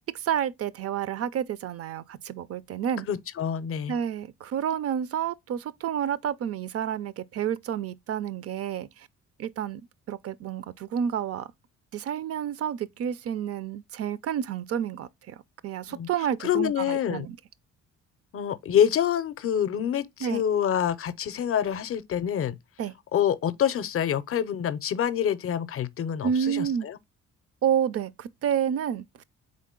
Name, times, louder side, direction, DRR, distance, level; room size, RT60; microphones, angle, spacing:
voice 1, 0.1-3.1 3.9-9.1 9.4-9.8 10.1-11.5 11.9-15.4 15.6-17.4 20.2-20.4 22.8-22.9 26.2-26.9 27.6-29.0, right 9 dB, 50° right, 0.4 m, -29 dB
voice 2, 3.1-4.0 15.9-16.1 16.4-17.3 18.3-22.6 23.1-27.0, left 9 dB, 50° left, 0.5 m, -26 dB
3.8 x 3.7 x 3.6 m
cardioid pair, 90°, 30 cm